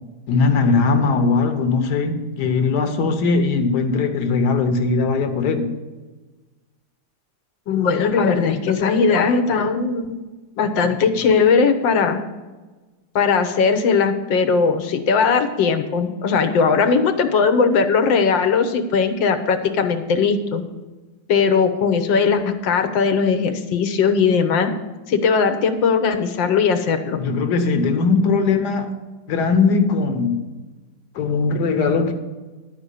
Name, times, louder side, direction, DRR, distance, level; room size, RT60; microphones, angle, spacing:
voice 1, 0.3-5.7 27.2-28.9 29.3-30.4 31.2-32.1, left 4 dB, 65° left, 7 dB, 1.6 m, -19 dB
voice 2, 7.7-10.1 10.6-12.2 13.2-20.6 21.3-24.7 25.1-27.2 28.7-28.8, left 5 dB, 85° left, 7 dB, 1.7 m, -19 dB
11.5 x 5.1 x 8.3 m, 1.2 s
omnidirectional pair, 2.0 m